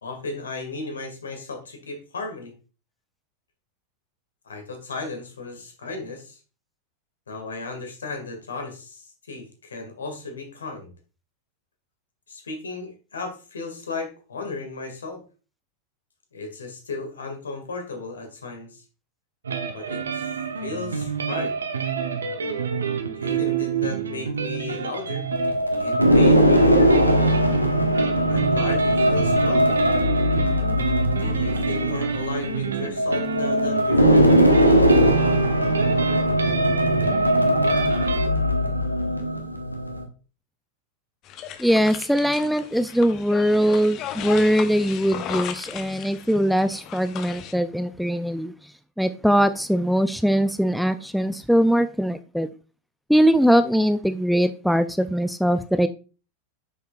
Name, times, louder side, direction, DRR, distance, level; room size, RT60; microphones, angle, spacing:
voice 1, 0.0-2.5 4.4-6.4 7.3-10.9 12.3-15.2 16.3-18.8 19.7-21.5 23.2-25.3 25.8-27.0 28.3-29.9 31.2-34.2, left 3 dB, 70° left, 2.0 m, -35 dB
sound 1, 19.4-38.3, right 6 dB, 70° right, 1.0 m, -28 dB
sound 2, 25.3-40.0, equal, 90° left, 1.1 m, -20 dB
sound 3, 41.2-47.5, left 9 dB, 35° left, 0.8 m, -36 dB
voice 2, 41.6-48.5 49.0-52.5 53.1-55.9, equal, ahead, 0.4 m, -21 dB
8.7 x 6.6 x 2.5 m
figure-of-eight pair, 90°, 0 cm